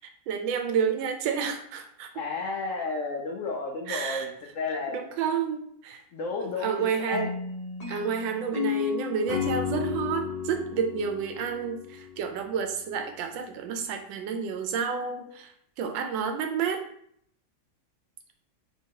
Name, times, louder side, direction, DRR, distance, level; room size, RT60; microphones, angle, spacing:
voice 1, 0.3-2.1 3.9-4.3 4.9-6.0 6.4-7.3 7.9-15.5 15.8-16.8, right 6 dB, 90° right, 6 dB, 1.3 m, -30 dB
voice 2, 2.1-5.0 6.1-7.2, left 3 dB, 80° left, 0 dB, 0.7 m, -32 dB
sound 1, 7.1-12.2, left 8 dB, 50° left, 0.4 m, -33 dB
3.3 x 2.8 x 4.6 m, 0.68 s
omnidirectional pair, 2.0 m